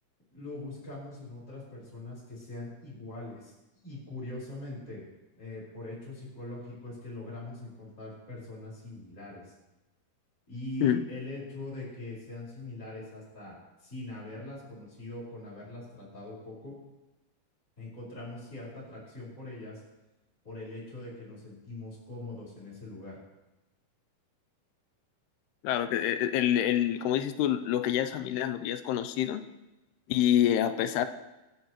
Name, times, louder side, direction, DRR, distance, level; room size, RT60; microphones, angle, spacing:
voice 1, 0.3-3.5 3.8-5.0 5.4-9.5 10.5-16.7 17.8-19.8 20.4-23.2, left 2 dB, 20° left, -8 dB, 4.9 m, -42 dB
voice 2, 25.6-29.4 30.1-31.1, left 11 dB, 85° left, 10 dB, 2.7 m, -27 dB
23.0 x 11.0 x 3.2 m, 1.0 s
omnidirectional pair, 4.7 m